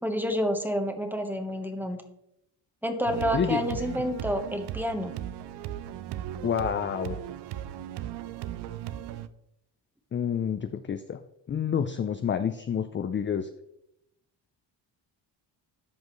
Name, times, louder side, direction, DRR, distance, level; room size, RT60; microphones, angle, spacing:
voice 1, 0.0-2.0 2.8-5.1, equal, 5° right, 6 dB, 1.2 m, -29 dB
sound 1, 3.1-9.3, right 12 dB, 70° right, 0.6 m, -37 dB
voice 2, 6.4-7.2 10.1-11.2 11.5-13.5, left 8 dB, 30° left, 9 dB, 0.4 m, -28 dB
13.0 x 5.3 x 3.1 m, 0.81 s
cardioid pair, 90°, 43 cm